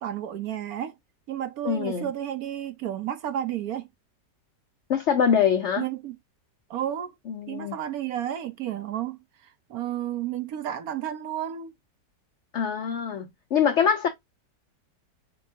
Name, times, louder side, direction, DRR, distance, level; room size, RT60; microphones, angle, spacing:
voice 1, 0.0-0.9 1.3-3.9 5.8-6.2 6.7-7.1 7.5-11.7, right 11 dB, 70° right, 1.0 m, -32 dB
voice 2, 1.6-2.1 4.9-5.8 7.3-7.8 12.5-14.1, left 7 dB, 85° left, 0.6 m, -24 dB
6.7 x 2.3 x 2.7 m
omnidirectional pair, 1.9 m